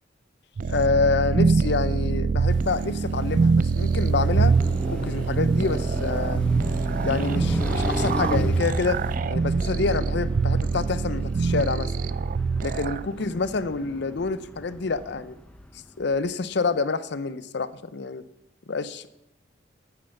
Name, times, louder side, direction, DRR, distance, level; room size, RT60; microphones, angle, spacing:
sound 1, 0.6-13.1, right 4 dB, 45° right, 0.3 m, -24 dB
voice 1, 0.7-4.5 4.9-6.4 7.0-9.0 9.3-11.9 12.6-15.4 16.0-18.2 18.7-19.1, left 4 dB, 65° left, 15 dB, 0.6 m, -27 dB
sound 2, 2.5-9.2, right 3 dB, 75° right, 0.9 m, -50 dB
Car passing by, 3.8-16.0, left 1 dB, 5° left, 0.8 m, -33 dB
9.3 x 8.6 x 7.1 m, 0.85 s
head